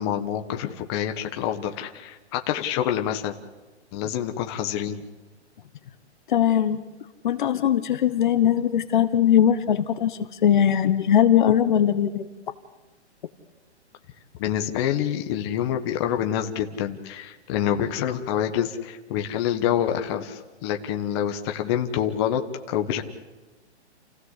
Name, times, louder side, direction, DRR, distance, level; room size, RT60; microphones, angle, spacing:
voice 1, 0.0-3.4 3.9-5.1 14.4-22.4 22.7-23.0, left 10 dB, 25° left, 5 dB, 1.3 m, -27 dB
voice 2, 6.3-6.8 7.2-12.2, left 10 dB, 45° left, 11 dB, 1.2 m, -20 dB
29.0 x 16.0 x 8.3 m, 1.2 s
hypercardioid pair, 160°, 34 cm